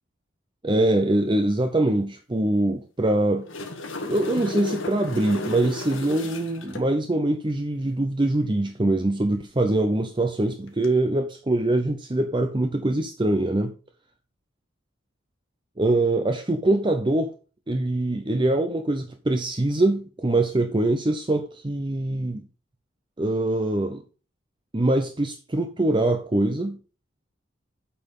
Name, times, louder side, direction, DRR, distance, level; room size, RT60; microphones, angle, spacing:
voice 1, 0.6-3.5 4.0-13.7 15.8-17.3 17.7-22.4 23.2-24.0 24.7-26.8, right 2 dB, 25° right, 0.6 m, -23 dB
sound 1, 3.2-6.9 10.7-10.9, left 2 dB, 90° left, 1.6 m, -33 dB
8.5 x 5.7 x 5.4 m
head